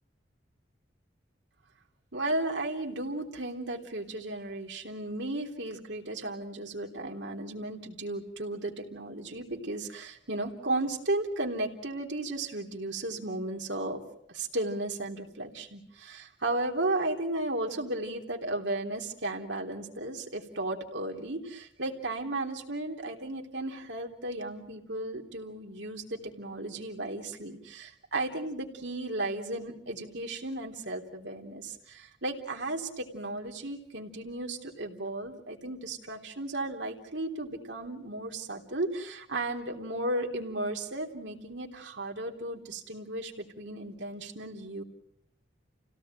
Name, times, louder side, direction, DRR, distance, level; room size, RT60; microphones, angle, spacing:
voice 1, 2.1-14.0 14.3-44.8, right 2 dB, 70° right, 2 dB, 3.5 m, -35 dB
29.0 x 17.5 x 9.1 m, 0.76 s
head